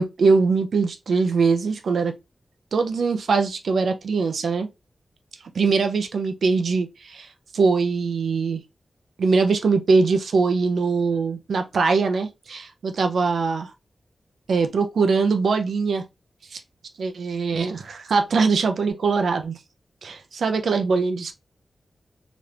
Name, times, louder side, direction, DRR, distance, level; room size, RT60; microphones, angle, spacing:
voice 1, 0.0-2.1 2.7-4.7 5.5-7.3 7.5-8.6 9.2-13.7 14.5-16.0 16.5-16.6 17.0-19.5 20.0-21.3, right 4 dB, 80° right, 0.5 m, -22 dB
3.3 x 3.0 x 2.4 m
wide cardioid pair, 95°, 0 cm